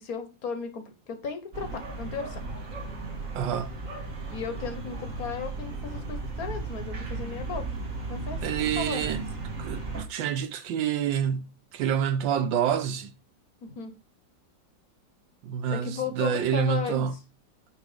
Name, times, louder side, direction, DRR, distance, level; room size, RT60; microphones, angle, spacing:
voice 1, 0.0-2.4 4.3-7.7 8.1-8.4 8.8-9.2 13.6-13.9 15.7-17.1, left 6 dB, 55° left, 1.6 m, -35 dB
sound 1, 1.5-10.0, right 3 dB, 45° right, 2.1 m, -35 dB
voice 2, 3.3-3.7 8.4-9.3 9.6-13.1 15.4-17.2, right 8 dB, 90° right, 1.6 m, -28 dB
9.5 x 3.4 x 5.0 m
omnidirectional pair, 2.0 m